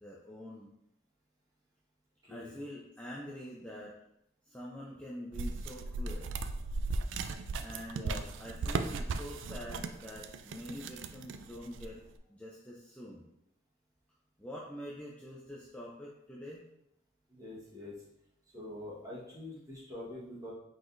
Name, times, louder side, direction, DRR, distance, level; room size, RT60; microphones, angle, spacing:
voice 1, 0.0-0.7 2.3-4.0 4.5-6.3 7.6-8.1 8.4-12.0 12.3-13.2 14.4-16.6, left 1 dB, 5° left, -4 dB, 0.4 m, -45 dB
sound 1, 5.3-12.1, right 3 dB, 75° right, 0.3 m, -37 dB
voice 2, 7.9-8.3 17.3-17.9 18.5-20.5, left 1 dB, 20° right, -7 dB, 1.3 m, -45 dB
4.7 x 3.9 x 2.6 m, 0.78 s
head